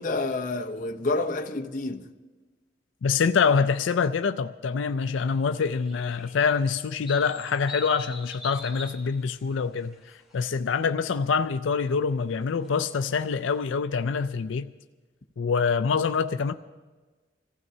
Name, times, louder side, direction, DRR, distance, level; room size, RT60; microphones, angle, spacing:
voice 1, 0.0-2.1, left 2 dB, 45° left, 0.9 m, -29 dB
voice 2, 3.0-14.7 15.4-16.5, left 5 dB, 90° left, 0.4 m, -25 dB
sound 1, 5.4-10.5 10.7-11.1 12.3-13.6, left 3 dB, ahead, 1.8 m, -44 dB
26.0 x 15.0 x 2.8 m
head